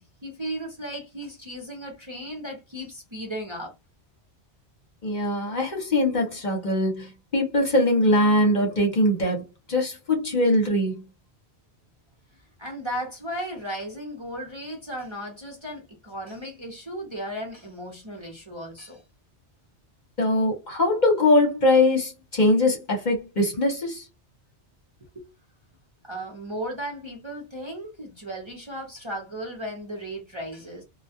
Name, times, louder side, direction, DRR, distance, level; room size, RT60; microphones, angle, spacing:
voice 1, 0.0-3.7 12.6-19.0 25.0-25.3 26.0-30.8, equal, 30° right, 0.7 m, -35 dB
voice 2, 5.0-9.4 9.7-11.0 20.2-24.1, left 1 dB, 45° left, 0.9 m, -22 dB
2.3 x 2.2 x 2.7 m
omnidirectional pair, 1.2 m